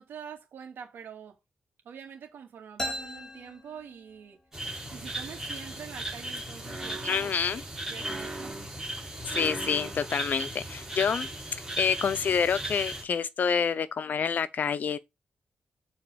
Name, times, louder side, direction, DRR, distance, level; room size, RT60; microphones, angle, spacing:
voice 1, 0.0-1.4 1.8-4.4 4.9-8.6, right 7 dB, 85° right, 2.5 m, -45 dB
sound 1, 2.8-4.5, equal, 20° left, 2.7 m, -38 dB
sound 2, 4.5-13.0, right 1 dB, 10° right, 4.0 m, -36 dB
voice 2, 7.0-7.6 9.3-15.0, left 6 dB, 55° left, 0.7 m, -28 dB
7.7 x 4.5 x 5.1 m
wide cardioid pair, 150°, 4 cm